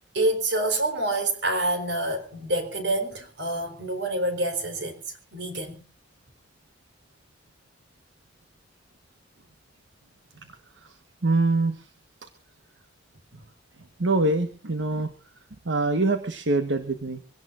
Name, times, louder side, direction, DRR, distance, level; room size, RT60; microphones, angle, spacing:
voice 1, 0.1-5.0 5.3-5.8, right 1 dB, 70° right, 4.4 m, -27 dB
voice 2, 11.2-11.9 14.0-15.1 15.6-17.2, right 2 dB, 90° right, 1.3 m, -24 dB
25.0 x 17.5 x 2.6 m
head